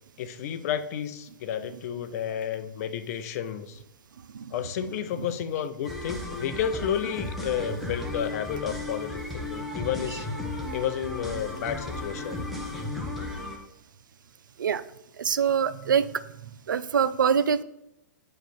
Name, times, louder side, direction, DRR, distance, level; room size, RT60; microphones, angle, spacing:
voice 1, 0.2-3.8 4.5-10.3 10.7-12.5, left 9 dB, 50° left, 11 dB, 0.6 m, -31 dB
sound 1, 5.8-13.6, left 1 dB, ahead, 1.1 m, -34 dB
voice 2, 15.2-16.2 16.7-17.6, right 7 dB, 85° right, 14 dB, 0.4 m, -24 dB
8.9 x 3.2 x 4.2 m, 0.82 s
hypercardioid pair, 125°, 10 cm